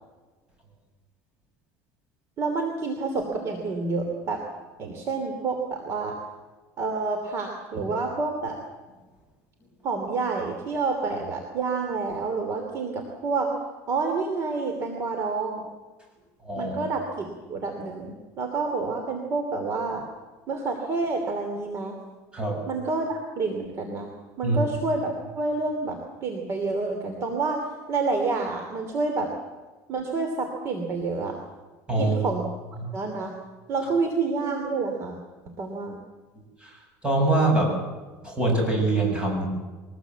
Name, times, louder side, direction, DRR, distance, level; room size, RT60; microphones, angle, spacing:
voice 1, 2.4-4.4 4.8-6.1 6.8-8.6 9.8-13.5 13.9-15.6 16.6-20.1 20.5-22.0 22.7-24.1 24.4-27.6 27.9-29.3 29.9-31.4 32.0-32.4 32.9-33.3 33.7-35.2 35.6-36.0, right 3 dB, 35° right, 4 dB, 2.8 m, -28 dB
voice 2, 16.4-16.8 22.3-22.6 24.4-24.6 31.9-32.2 36.6-36.8 37.0-37.7 38.2-39.5, right 2 dB, 15° right, 0 dB, 7.9 m, -23 dB
23.0 x 19.5 x 8.2 m, 1.3 s
cardioid pair, 155°, 8 cm